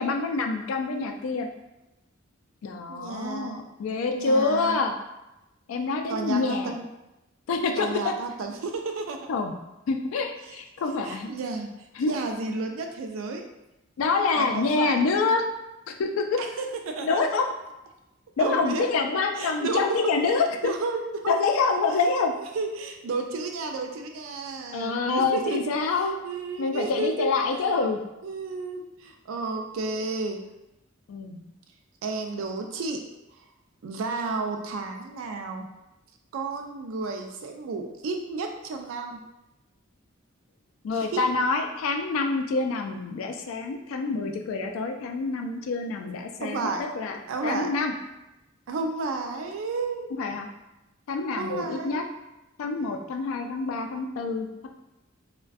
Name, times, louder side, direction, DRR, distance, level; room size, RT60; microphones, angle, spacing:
voice 1, 0.0-1.5 2.6-4.9 5.7-6.7 7.5-8.1 9.3-9.5 9.9-11.3 12.0-12.1 14.0-15.4 15.9-16.4 17.0-17.5 18.4-20.7 21.3-22.3 24.7-26.1 26.6-28.0 31.1-31.4 40.8-47.9 50.2-50.5 51.1-52.0 52.6-54.7, left 4 dB, 85° left, 4 dB, 0.3 m, -26 dB
voice 2, 2.9-3.6 4.1-4.8 6.1-6.9 7.8-9.2 10.4-10.6 10.9-11.7 12.0-13.4 14.4-14.9 16.4-17.2 18.4-18.9 19.4-20.4 20.6-21.4 21.9-22.0 22.3-25.7 26.0-27.3 28.2-30.4 32.0-33.0 33.8-35.7 36.3-39.2 41.1-41.2 46.4-46.8 47.3-47.7 48.7-50.1 51.4-52.1, right 3 dB, 75° right, 4 dB, 0.3 m, -32 dB
2.5 x 2.1 x 2.3 m, 0.95 s
head